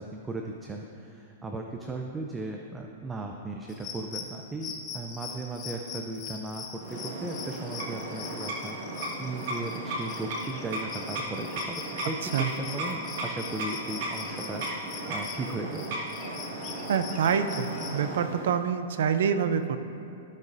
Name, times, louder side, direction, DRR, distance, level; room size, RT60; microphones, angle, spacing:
voice 1, 0.0-16.0, right 2 dB, 10° right, 1 dB, 0.5 m, -37 dB
sound 1, 3.7-18.0, left 6 dB, 25° left, 0.8 m, -42 dB
sound 2, 6.8-18.6, right 1 dB, 50° right, 1.7 m, -36 dB
voice 2, 12.2-12.5 16.9-19.8, right 7 dB, 70° right, 9 dB, 0.5 m, -26 dB
15.0 x 6.4 x 2.6 m, 2.6 s
hypercardioid pair, 155°, 0 cm